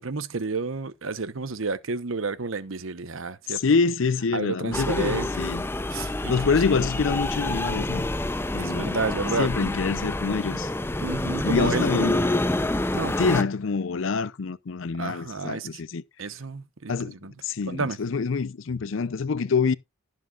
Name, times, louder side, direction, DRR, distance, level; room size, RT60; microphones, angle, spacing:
voice 1, 0.0-3.6 4.3-5.4 5.9-6.3 8.6-9.8 11.0-12.2 12.9-13.2 14.9-15.8 16.2-17.3 17.7-18.0, right 4 dB, 70° right, 0.9 m, -31 dB
voice 2, 3.5-5.6 6.3-8.1 8.5-9.0 9.4-10.7 11.4-12.2 13.2-16.0 16.9-17.2 17.4-19.8, left 5 dB, 65° left, 0.5 m, -26 dB
sound 1, 4.7-13.4, left 1 dB, 10° left, 0.5 m, -27 dB
16.0 x 7.6 x 2.4 m
head